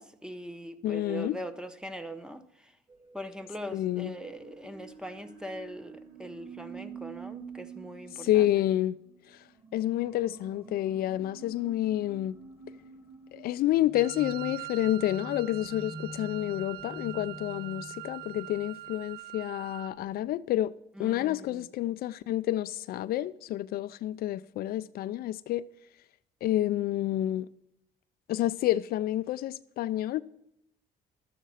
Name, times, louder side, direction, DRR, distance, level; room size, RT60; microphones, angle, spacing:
voice 1, 0.0-2.7 3.1-8.5 20.9-21.7, equal, 5° right, 0.8 m, -41 dB
voice 2, 0.8-1.4 3.7-4.1 8.2-9.0 9.7-12.4 13.3-20.7 21.0-25.6 26.4-27.5 28.3-30.2, left 13 dB, 65° left, 0.4 m, -29 dB
sound 1, 2.9-19.1, right 3 dB, 30° right, 2.2 m, -47 dB
Wind instrument woodwind instrument, 13.9-20.0, right 16 dB, 70° right, 0.4 m, -43 dB
11.5 x 7.4 x 5.6 m
cardioid pair, 110°, 17 cm